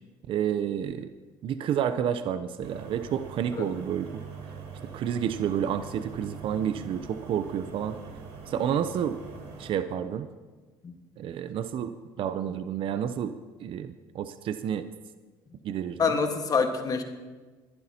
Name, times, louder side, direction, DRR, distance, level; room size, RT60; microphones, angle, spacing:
voice 1, 0.3-1.1 1.4-4.2 4.9-8.0 8.5-9.2 9.6-10.3 11.2-14.9 15.6-16.0, right 9 dB, 55° right, 11 dB, 0.6 m, -30 dB
sound 1, 2.6-9.7, right 5 dB, 70° right, 3.3 m, -43 dB
voice 2, 16.0-17.0, left 5 dB, 35° left, 5 dB, 1.5 m, -26 dB
21.5 x 11.5 x 2.9 m, 1.4 s
supercardioid pair, 80°, 11 cm